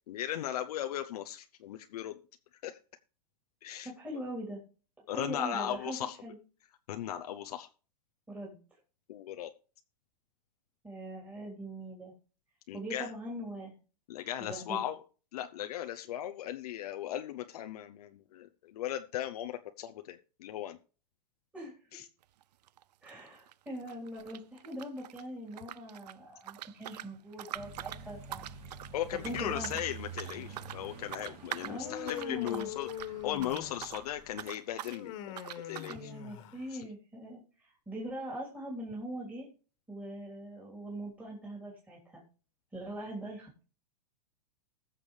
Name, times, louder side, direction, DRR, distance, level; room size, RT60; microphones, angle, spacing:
voice 1, 0.1-2.2 2.6-2.8 3.6-3.9 5.1-6.2 6.9-7.7 9.1-9.5 12.7-13.1 14.1-15.0 15.3-20.8 21.9-22.0 28.9-32.9 33.2-35.4 35.6-36.1 36.7-36.9, left 11 dB, 65° left, 7 dB, 0.7 m, -37 dB
voice 2, 3.8-4.6 5.1-6.4 8.3-8.6 10.8-12.1 12.7-13.7 14.4-14.8 21.5-21.7 23.0-28.5 29.2-29.7 31.6-32.7 35.9-39.5 39.9-42.2 42.7-43.6, right 1 dB, 5° right, -5 dB, 3.4 m, -42 dB
sound 1, 22.2-22.4 22.7-25.2 25.5-34.1 34.3-35.0 35.4-36.0, right 13 dB, 80° right, 0.4 m, -44 dB
Accelerating revving vroom, 27.5-34.4, right 4 dB, 35° right, 3.5 m, -48 dB
Human voice, 31.7-34.0 34.9-36.7, left 11 dB, 45° left, 1.7 m, -42 dB
20.0 x 6.8 x 3.3 m, 0.37 s
hypercardioid pair, 145°, 21 cm